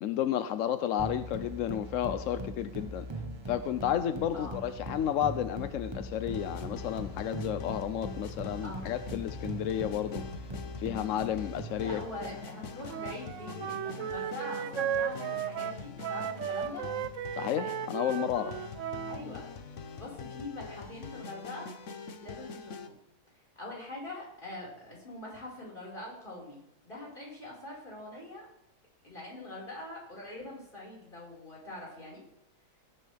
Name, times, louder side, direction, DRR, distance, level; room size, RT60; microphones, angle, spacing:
voice 1, 0.0-3.1 3.5-10.2 10.8-12.0 17.4-18.6, left 10 dB, 70° left, 0.8 m, -32 dB
sound 1, 1.0-12.5, equal, 25° right, 0.7 m, -41 dB
sound 2, 6.3-22.9, left 5 dB, 50° left, 1.1 m, -44 dB
voice 2, 11.8-16.9 19.1-19.4 20.0-21.7 22.2-22.9 23.6-28.5 29.0-32.2, left 1 dB, 30° left, 5.2 m, -43 dB
Wind instrument woodwind instrument, 12.9-19.2, right 9 dB, 65° right, 0.8 m, -35 dB
19.0 x 10.0 x 3.4 m
omnidirectional pair, 1.8 m